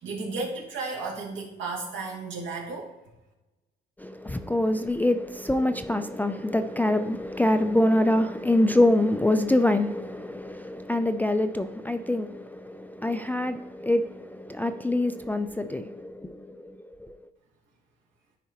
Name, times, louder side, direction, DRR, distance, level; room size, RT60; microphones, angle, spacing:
voice 1, 0.0-2.9, right 3 dB, 70° right, 2.3 m, -33 dB
voice 2, 4.0-16.8 17.0-17.2, left 1 dB, 10° left, 0.3 m, -25 dB
9.9 x 4.2 x 2.9 m
cardioid pair, 90°, 20 cm